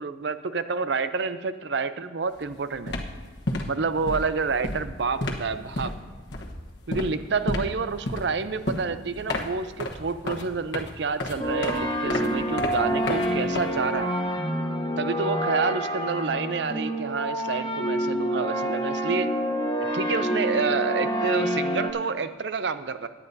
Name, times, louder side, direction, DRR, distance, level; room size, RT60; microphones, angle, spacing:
voice 1, 0.0-3.0 3.7-5.9 6.9-14.1 15.0-19.3 19.9-23.1, right 4 dB, 65° right, 11 dB, 0.5 m, -28 dB
sound 1, 2.3-2.5 2.7-14.2, left 1 dB, 65° left, 1.1 m, -32 dB
sound 2, 11.4-21.9, equal, 25° left, 0.8 m, -27 dB
17.5 x 9.8 x 2.7 m, 1.3 s
head